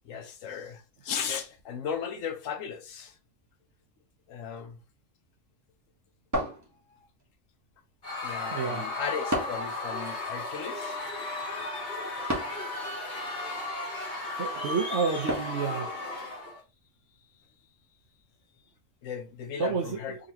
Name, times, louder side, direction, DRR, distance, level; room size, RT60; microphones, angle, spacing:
voice 1, 0.0-3.2 4.3-4.8 6.9-7.1 8.2-11.0 19.0-20.2, left 7 dB, 85° left, 1.1 m, -36 dB
sound 1, 6.3-7.2 9.3-9.8 12.3-12.7 15.3-15.7, equal, 15° right, 0.8 m, -31 dB
Screaming / Cheering / Crowd, 8.0-16.6, left 2 dB, 50° left, 1.7 m, -35 dB
voice 2, 8.5-8.9 14.3-15.9 19.6-20.0, right 5 dB, 65° right, 0.9 m, -30 dB
3.9 x 3.0 x 2.7 m
omnidirectional pair, 1.3 m